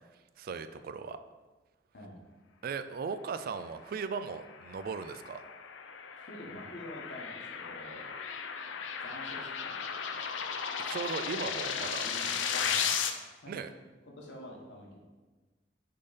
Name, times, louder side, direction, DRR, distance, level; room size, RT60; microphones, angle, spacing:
voice 1, 0.4-1.2 2.6-5.4 10.9-12.1 13.5-13.7, right 5 dB, 50° right, 11 dB, 0.3 m, -37 dB
sound 1, 4.2-13.1, left 7 dB, 80° left, 0.5 m, -35 dB
voice 2, 6.1-8.1 9.0-10.3 11.9-12.9 13.4-13.7 14.2-15.0, left 1 dB, 65° left, -1 dB, 1.3 m, -47 dB
6.5 x 3.8 x 4.1 m, 1.3 s
head